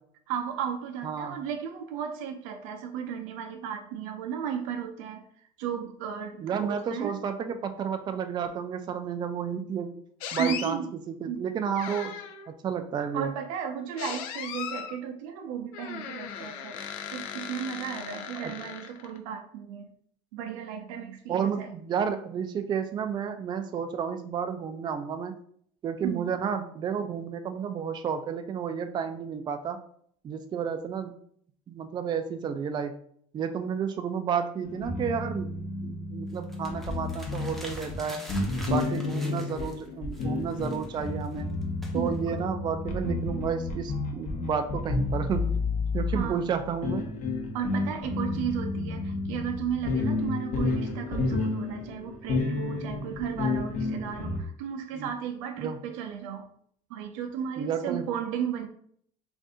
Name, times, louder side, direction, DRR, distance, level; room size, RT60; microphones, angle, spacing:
voice 1, 0.3-5.2 5.6-7.2 10.4-10.9 11.3-11.4 13.0-16.8 17.1-19.9 20.3-21.7 26.0-26.3 38.7-39.0 41.9-42.5 46.1-46.4 47.5-56.5 56.9-58.7, right 8 dB, 85° right, 6 dB, 0.6 m, -34 dB
voice 2, 1.0-1.4 6.4-9.9 10.3-10.8 11.1-12.2 12.5-13.3 18.4-18.5 21.3-25.3 25.8-29.8 30.2-31.1 31.7-32.9 33.3-35.5 35.8-38.2 38.7-41.5 41.9-45.4 45.9-47.0 54.9-55.1 55.6-55.8 57.6-58.1, right 7 dB, 25° right, 7 dB, 0.3 m, -31 dB
sound 1, 10.2-10.7 11.8-12.5 14.0-15.0 15.7-19.2, left 8 dB, 85° left, 0.5 m, -37 dB
sound 2, 34.6-54.4, left 3 dB, 45° left, 0.8 m, -31 dB
sound 3, 36.3-39.9 40.1-42.4, equal, ahead, 0.7 m, -46 dB
2.6 x 2.5 x 3.6 m, 0.63 s
supercardioid pair, 105°, 17 cm